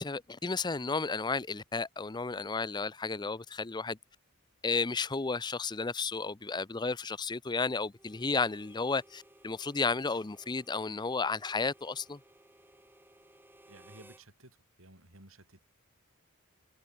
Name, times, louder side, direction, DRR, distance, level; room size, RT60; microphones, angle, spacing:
voice 1, 0.0-4.0 4.6-12.2, left 4 dB, 20° left, 0.5 m, -33 dB
Harmonica, 7.9-14.3, right 1 dB, 10° right, 6.8 m, -60 dB
voice 2, 13.7-15.6, right 2 dB, 70° right, 7.2 m, -55 dB
head